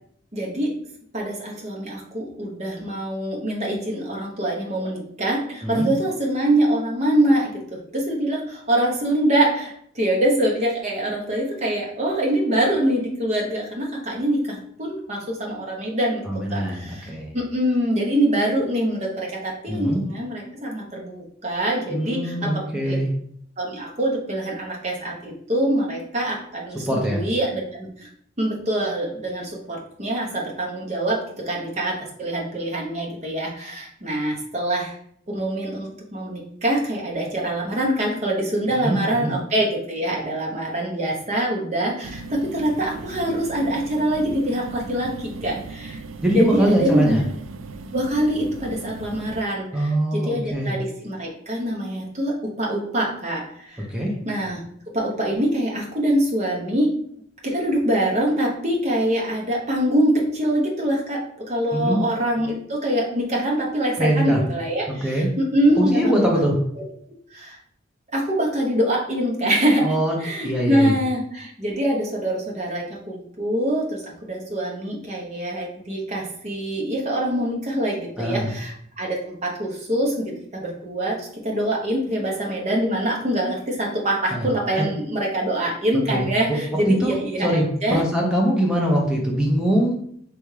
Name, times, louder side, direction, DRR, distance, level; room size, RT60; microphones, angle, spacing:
voice 1, 0.3-0.7 1.1-16.2 16.5-23.0 23.6-28.1 28.4-34.9 35.3-46.0 46.3-47.2 47.9-53.8 54.2-54.6 54.9-56.9 57.4-66.3 67.3-67.6 68.1-69.9 70.2-88.0, right 1 dB, 35° right, -1 dB, 0.9 m, -24 dB
voice 2, 16.3-17.3 19.7-20.0 21.9-23.1 26.7-27.2 38.7-39.3 46.2-47.2 49.7-50.7 53.9-54.1 61.7-62.0 64.0-64.4 64.9-65.3 65.8-66.6 69.8-70.2 70.4-71.0 78.2-78.5 84.3-84.5 86.1-86.6 86.9-87.7 87.9-89.9, right 1 dB, 5° right, -2 dB, 0.7 m, -22 dB
sound 1, 42.0-49.4, right 3 dB, 80° right, 0.3 m, -37 dB
3.5 x 3.4 x 3.2 m, 0.66 s
head